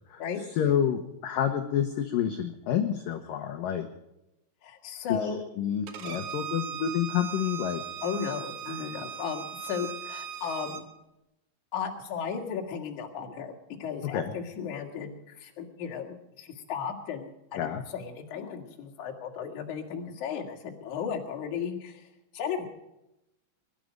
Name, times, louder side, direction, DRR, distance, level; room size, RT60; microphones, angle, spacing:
voice 1, 0.6-3.9 5.2-5.3 5.6-7.8 14.1-14.3 17.6-17.8, left 9 dB, 80° left, 6 dB, 2.0 m, -28 dB
voice 2, 4.6-5.4 6.0-6.2 8.0-10.9 11.7-13.5 13.8-22.1 22.3-22.6, left 7 dB, 50° left, 1 dB, 3.0 m, -35 dB
Bowed string instrument, 5.9-10.8, right 8 dB, 80° right, 1.7 m, -38 dB
22.0 x 12.0 x 5.1 m, 0.90 s
omnidirectional pair, 5.4 m